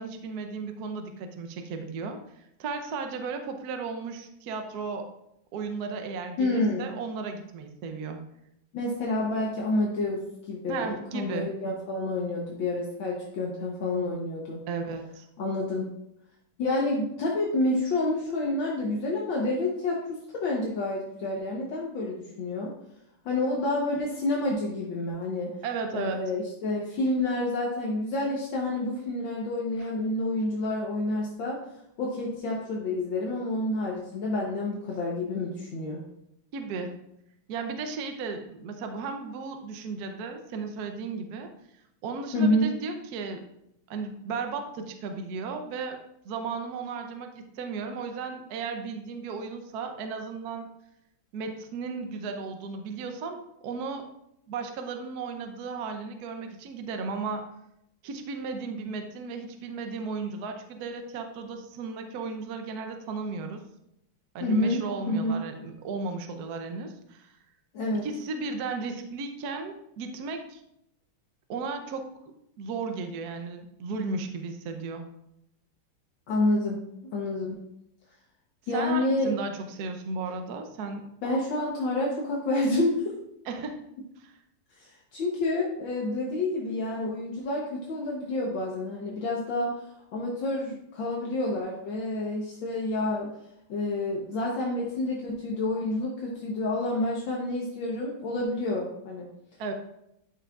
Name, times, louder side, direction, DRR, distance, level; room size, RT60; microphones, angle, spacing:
voice 1, 0.0-5.1 5.5-8.2 10.7-11.5 14.7-15.3 25.6-26.2 36.5-37.0 37.5-41.5 42.0-43.5 43.9-46.0 46.2-50.7 51.3-54.1 54.5-57.5 58.0-63.6 64.3-67.4 68.0-70.6 71.5-72.2 72.6-75.0 78.7-81.0 83.5-83.8 84.2-84.3 99.6-99.7, right 4 dB, 60° right, 5 dB, 1.1 m, -35 dB
voice 2, 6.4-6.9 8.7-14.6 15.4-15.9 16.6-22.7 23.3-25.5 25.9-31.6 32.0-36.0 42.3-42.7 64.4-64.8 65.1-65.4 67.7-68.1 76.3-76.8 77.1-77.6 78.7-79.3 81.2-83.2 84.8-89.8 90.1-93.3 93.7-99.3, left 2 dB, 65° left, -3 dB, 1.7 m, -29 dB
12.0 x 5.7 x 2.4 m, 0.80 s
omnidirectional pair, 2.4 m